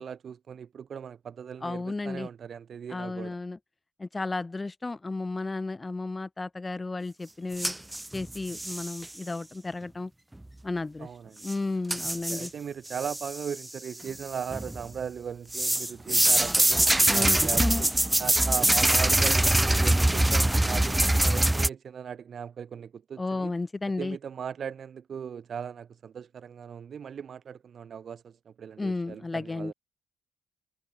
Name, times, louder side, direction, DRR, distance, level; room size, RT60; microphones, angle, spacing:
voice 1, 0.0-3.4 11.0-11.5 12.3-17.9 18.2-23.5 24.0-29.7, right 7 dB, 55° right, 1.6 m, -38 dB
voice 2, 1.6-2.3 2.9-3.6 4.0-7.7 8.1-10.1 10.6-11.1 11.4-12.5 17.1-17.9 23.2-24.2 28.8-29.7, left 3 dB, 20° left, 0.8 m, -33 dB
sound 1, 7.6-9.1 11.4-11.5 11.9-12.5 12.9-13.7 14.1-14.8 15.5-21.7, right 1 dB, 10° right, 0.4 m, -24 dB
cardioid pair, 90°, 0 cm